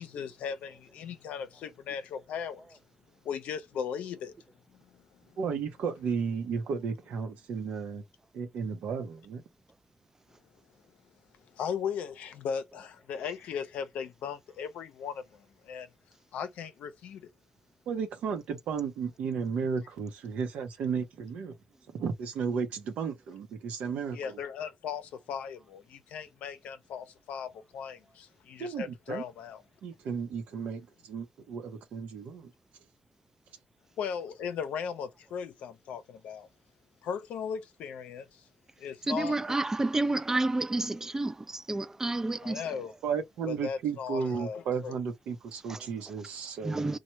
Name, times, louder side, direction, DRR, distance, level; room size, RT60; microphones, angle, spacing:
voice 1, 0.0-2.8 3.2-4.3 4.7-5.4 11.5-15.9 16.3-17.3 24.1-29.6 34.0-36.5 37.0-38.4 38.8-39.4 42.4-42.9 43.5-45.0, left 7 dB, 90° left, 0.5 m, -37 dB
voice 2, 5.4-8.0 8.3-9.4 17.9-21.5 21.9-24.4 28.6-29.2 29.8-32.5 43.0-47.0, right 6 dB, 85° right, 0.7 m, -34 dB
voice 3, 39.1-42.9 45.7-45.9 46.2-46.3 46.6-47.0, right 2 dB, 20° right, 0.4 m, -30 dB
3.1 x 2.2 x 2.9 m
cardioid pair, 70°, 2 cm